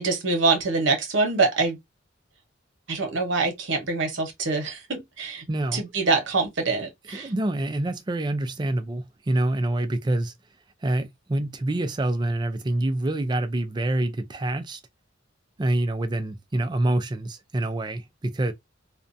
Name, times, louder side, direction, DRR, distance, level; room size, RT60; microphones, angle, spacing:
voice 1, 0.0-1.8 2.9-5.4 5.7-7.3, right 3 dB, 70° right, 0.9 m, -25 dB
voice 2, 5.5-5.8 7.1-10.3 10.8-14.8 15.6-18.5, right 1 dB, 25° right, 0.4 m, -26 dB
2.5 x 2.1 x 2.6 m
head